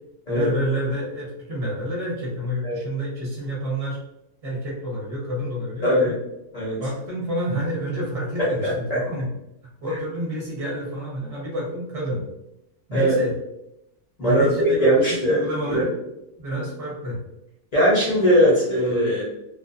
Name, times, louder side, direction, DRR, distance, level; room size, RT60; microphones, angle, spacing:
voice 1, 0.3-4.0 4.4-6.1 6.8-9.3 9.8-12.2 12.9-13.3 14.2-15.9 16.4-17.2, equal, 30° right, -4 dB, 0.7 m, -28 dB
voice 2, 8.4-9.0 12.9-13.2 14.2-15.4 15.7-15.8 16.5-16.6 17.7-19.2, equal, 60° left, -6 dB, 0.4 m, -20 dB
2.4 x 2.4 x 2.5 m, 0.86 s
omnidirectional pair, 1.7 m